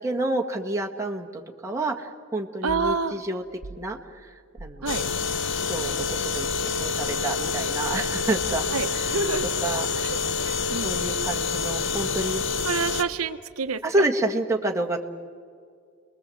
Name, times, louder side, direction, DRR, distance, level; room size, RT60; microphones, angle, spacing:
voice 1, 0.0-3.4 3.7-5.1 5.6-6.5 6.8-9.2 9.6-9.9 10.8-12.4 13.8-15.0, right 2 dB, 15° right, 0 dB, 1.7 m, -29 dB
voice 2, 2.6-3.2 4.8-5.1 8.7-9.5 10.0-10.2 10.4-11.0 12.6-13.8, right 4 dB, 85° right, 10 dB, 0.9 m, -28 dB
sound 1, 2.7-2.9 3.6-3.9 4.6-4.8 6.5-6.8 8.4-8.9, right 2 dB, 55° right, 1.0 m, -41 dB
sound 2, 4.9-13.0, left 5 dB, 60° left, 1.0 m, -27 dB
29.5 x 21.5 x 7.8 m, 2.1 s
head